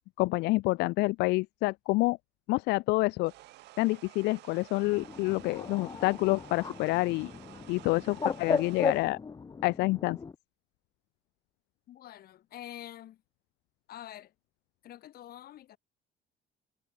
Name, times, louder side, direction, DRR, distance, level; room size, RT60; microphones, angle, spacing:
voice 1, 0.2-2.2 2.5-3.3 3.8-7.3 7.7-9.2 9.6-10.2, left 22 dB, 85° left, 0.5 m, -28 dB
sound 1, 3.3-9.1, right 18 dB, 85° right, 4.6 m, -52 dB
Bird, 4.8-10.3, left 5 dB, 25° left, 0.9 m, -36 dB
voice 2, 11.9-13.2 13.9-14.3 14.8-15.8, left 12 dB, 65° left, 4.0 m, -46 dB
cardioid pair, 110°, 17 cm